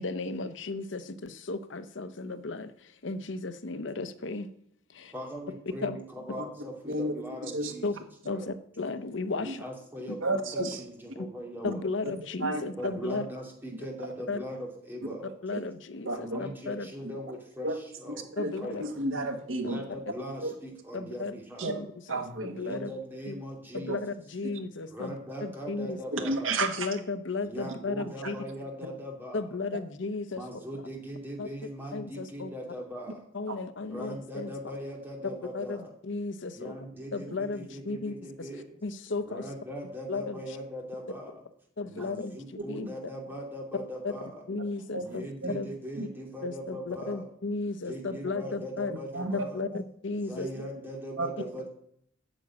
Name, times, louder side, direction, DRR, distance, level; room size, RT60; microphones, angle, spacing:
voice 1, 0.0-4.5 4.9-5.1 5.8-6.0 7.8-7.9 8.2-9.6 10.6-10.7 11.6-13.3 14.3-14.4 15.4-16.9 18.4-18.8 19.6-19.7 20.9-21.3 21.6-22.9 23.3-23.4 23.7-26.0 26.6-28.4 29.3-30.4 31.4-31.5 31.9-32.5 33.3-34.5 35.5-36.8 37.1-38.5 38.8-39.5 40.1-40.4 41.8-42.9 44.0-44.1 44.5-45.7 46.4-48.9 49.3-50.5, left 3 dB, 70° left, 11 dB, 0.8 m, -35 dB
voice 2, 5.1-6.5 6.8-7.9 8.3-8.5 9.4-10.4 10.8-11.8 12.8-15.3 16.1-18.3 18.6-18.9 19.6-21.8 22.6-24.0 24.9-26.6 27.4-29.5 30.4-33.2 33.9-35.9 36.5-38.7 39.2-41.4 41.8-44.5 45.0-47.3 47.8-49.6 50.2-51.7, equal, 10° right, 0 dB, 2.6 m, -40 dB
voice 3, 10.2-10.8 12.0-12.1 12.4-12.6 15.5-15.6 16.0-16.4 17.0-17.1 17.6-17.8 18.1-19.8 20.4-20.5 21.6-21.7 22.1-22.8 23.9-24.0 24.4-24.5 26.1-26.9 28.2-28.3 33.5-33.6 37.3-37.4 44.9-45.5 46.0-46.1 49.1-49.4 50.4-50.5 51.2-51.3, right 2 dB, 85° right, 5 dB, 1.6 m, -32 dB
9.0 x 7.2 x 8.7 m, 0.70 s
head